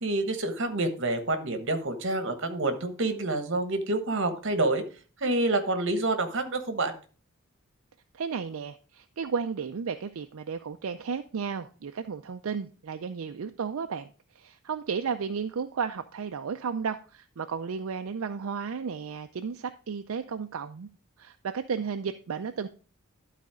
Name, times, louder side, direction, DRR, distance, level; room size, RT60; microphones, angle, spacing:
voice 1, 0.0-4.8 5.2-6.9, right 2 dB, 60° right, 9 dB, 1.3 m, -28 dB
voice 2, 8.1-14.1 14.3-20.9 21.2-22.7, right 6 dB, 80° right, 8 dB, 0.5 m, -33 dB
12.0 x 4.1 x 4.8 m, 0.38 s
head